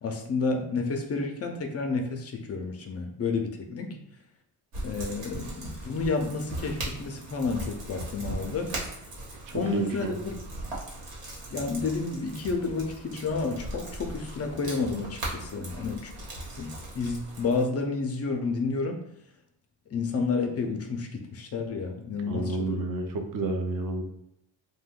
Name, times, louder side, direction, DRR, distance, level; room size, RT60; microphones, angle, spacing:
voice 1, 0.0-3.9 4.8-8.7 9.5-10.1 11.5-16.1 16.6-16.7 17.0-19.0 19.9-22.8, left 4 dB, 35° left, 4 dB, 0.4 m, -30 dB
sound 1, 4.7-17.6, right 1 dB, 90° right, 1.2 m, -39 dB
voice 2, 9.5-10.1 22.3-24.0, right 3 dB, 45° right, 4 dB, 0.5 m, -30 dB
2.6 x 2.2 x 3.6 m, 0.80 s
cardioid pair, 130°, 48 cm